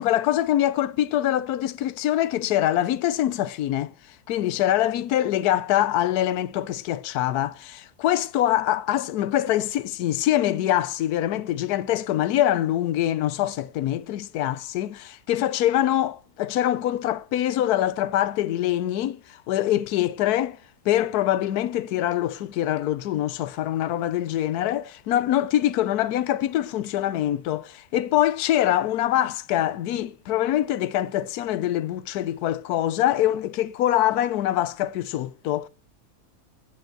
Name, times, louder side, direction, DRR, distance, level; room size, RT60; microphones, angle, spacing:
voice 1, 0.0-3.9 4.3-20.6 20.8-35.7, left 12 dB, 70° left, 1.2 m, -24 dB
9.5 x 7.2 x 7.9 m
omnidirectional pair, 1.8 m